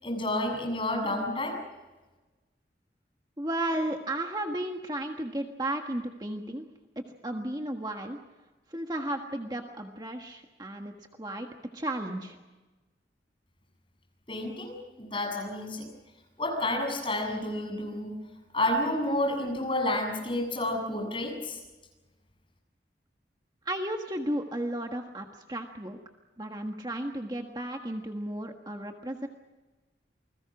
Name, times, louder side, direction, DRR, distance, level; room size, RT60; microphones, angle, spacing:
voice 1, 0.0-1.6 14.3-15.9 16.4-18.2 18.5-21.6, left 1 dB, 30° left, 1 dB, 7.5 m, -30 dB
voice 2, 3.4-6.6 6.9-8.2 8.7-11.5 11.7-12.4 23.6-26.0 26.4-29.3, right 1 dB, 25° right, 3 dB, 1.5 m, -34 dB
29.0 x 21.0 x 6.1 m, 1.2 s
head